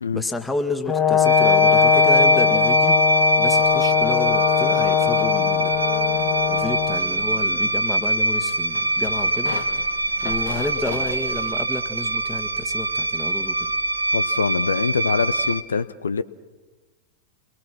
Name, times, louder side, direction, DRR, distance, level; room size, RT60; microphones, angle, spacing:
voice 1, 0.1-3.0 3.4-5.7 6.5-9.6 10.2-13.7, left 2 dB, 10° left, 7 dB, 1.9 m, -30 dB
Brass instrument, 0.9-7.0, left 8 dB, 30° left, 2.5 m, -20 dB
sound 1, 1.2-15.6, right 1 dB, 80° right, 1.3 m, -23 dB
sound 2, 3.5-11.5, left 7 dB, 55° left, 2.0 m, -39 dB
voice 2, 14.1-16.2, left 5 dB, 70° left, 16 dB, 0.7 m, -24 dB
29.5 x 22.5 x 6.2 m, 1.3 s
figure-of-eight pair, 90°, 0 cm